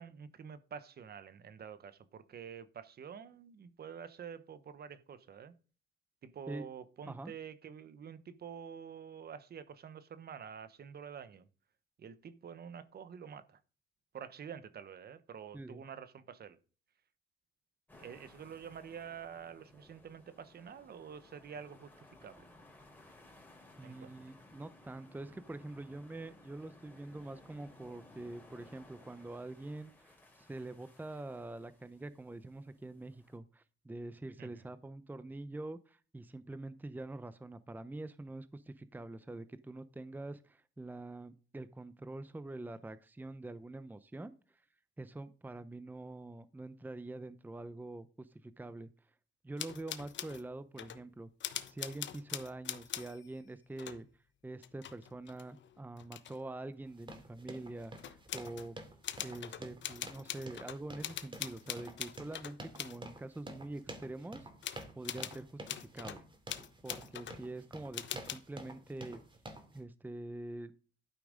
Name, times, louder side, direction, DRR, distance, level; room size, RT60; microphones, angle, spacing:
voice 1, 0.0-5.5 6.2-11.5 12.0-13.6 14.1-16.6 18.0-21.9 22.2-22.5 23.8-24.1 34.4-34.6, right 7 dB, 50° right, 1.1 m, -48 dB
sound 1, 17.9-33.4, left 2 dB, 10° left, 3.4 m, -60 dB
voice 2, 23.8-44.6 45.0-48.9 49.4-51.3 51.7-54.1 54.4-58.8 59.2-64.5 64.9-66.2 66.8-69.2 69.7-70.7, right 2 dB, 10° right, 0.7 m, -45 dB
sound 2, 49.6-50.5 50.8-51.0 51.4-53.4 53.8-54.0 54.6-56.4 58.0-58.7 59.0-63.0 64.6-66.2 66.5-67.4 67.9-68.4, left 10 dB, 65° left, 1.0 m, -43 dB
sound 3, 56.9-69.8, right 2 dB, 25° right, 2.6 m, -50 dB
12.0 x 5.8 x 5.1 m
cardioid pair, 90°, 20 cm